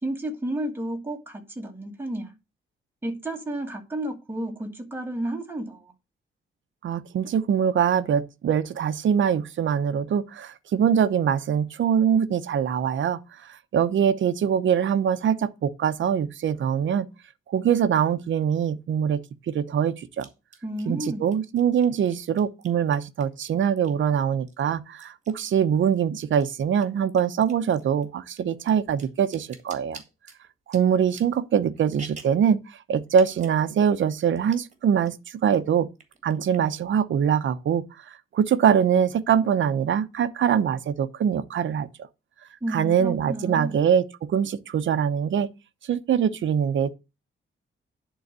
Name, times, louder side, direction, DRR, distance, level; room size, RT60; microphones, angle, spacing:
voice 1, 0.0-2.3 3.0-5.9 20.6-21.3 42.6-43.8, right 1 dB, 10° right, 1.9 m, -32 dB
voice 2, 6.8-17.1 17.5-20.3 20.9-30.0 30.7-35.9 36.2-37.8 38.3-41.9 42.7-45.5 45.8-46.9, right 8 dB, 65° right, 0.8 m, -23 dB
sound 1, 18.4-18.5 20.2-24.1 24.5-26.0 26.3-32.5 33.1-33.6 33.9-34.0 34.2-34.8 35.1-35.6 35.9-36.8, right 4 dB, 35° right, 1.8 m, -48 dB
10.5 x 4.0 x 6.7 m
wide cardioid pair, 170°, 21 cm